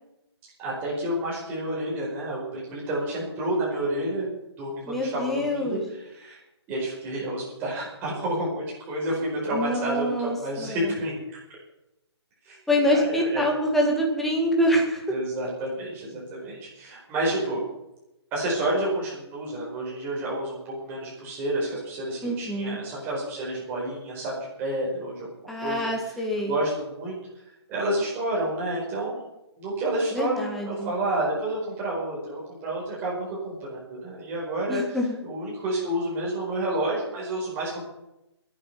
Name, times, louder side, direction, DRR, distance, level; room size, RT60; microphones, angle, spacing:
voice 1, 0.6-4.3 4.6-5.8 6.1-6.4 6.7-11.2 12.4-12.6 12.9-13.4 15.1-17.6 18.3-25.3 25.6-25.9 26.5-27.2 27.7-29.2 29.6-34.8 35.2-37.8, right 1 dB, 15° right, -5 dB, 4.9 m, -29 dB
voice 2, 4.9-5.8 9.5-10.9 12.7-15.0 22.2-22.8 25.5-26.5 30.1-30.9 34.7-35.2, equal, ahead, 0 dB, 1.7 m, -25 dB
22.5 x 8.9 x 5.8 m, 0.91 s
hypercardioid pair, 165°, 15 cm